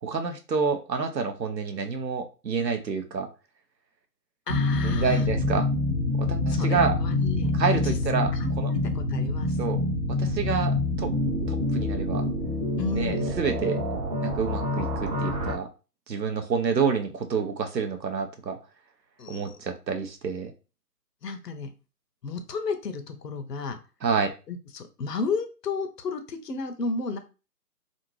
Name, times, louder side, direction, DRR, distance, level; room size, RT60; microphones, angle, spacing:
voice 1, 0.0-3.3 4.8-5.7 6.2-7.0 7.6-8.7 9.6-9.8 10.1-11.1 11.5-12.2 12.9-13.8 14.2-15.7 16.1-18.6 19.3-20.5 24.0-24.3, right 5 dB, 85° right, 6 dB, 0.8 m, -28 dB
voice 2, 4.5-5.2 6.5-7.5 7.8-9.5 12.8-13.3 19.2-19.6 21.2-21.7 22.2-23.8 24.5-27.2, left 4 dB, 75° left, 7 dB, 0.7 m, -33 dB
sound 1, 4.5-15.5, left 2 dB, 25° right, 0.5 m, -26 dB
2.6 x 2.5 x 3.0 m, 0.32 s
figure-of-eight pair, 140°, 49 cm